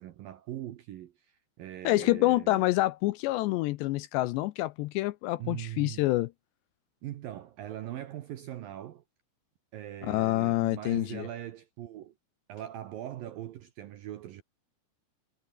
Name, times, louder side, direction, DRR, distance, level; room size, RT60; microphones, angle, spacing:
voice 1, 0.0-2.6 5.4-6.1 7.0-9.0 9.7-12.1 12.5-14.4, right 12 dB, 70° right, 2.2 m, -41 dB
voice 2, 1.8-6.3 10.0-11.3, left 18 dB, 80° left, 2.6 m, -27 dB
omnidirectional pair, 5.5 m